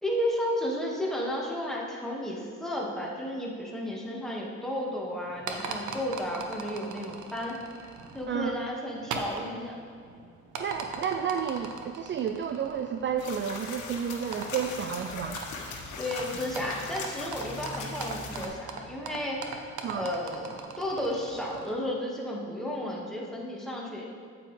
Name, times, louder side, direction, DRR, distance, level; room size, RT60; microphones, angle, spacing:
voice 1, 0.0-7.6 8.1-9.8 16.0-19.5 19.9-24.0, left 1 dB, ahead, -3 dB, 1.7 m, -33 dB
sound 1, 5.2-21.7, right 4 dB, 75° right, 0.9 m, -41 dB
voice 2, 10.6-15.4 19.8-20.1, right 7 dB, 40° right, 6 dB, 0.4 m, -31 dB
sound 2, 13.2-18.5, left 4 dB, 75° left, 1.5 m, -39 dB
8.9 x 8.6 x 3.3 m, 2.3 s
cardioid pair, 90°, 30 cm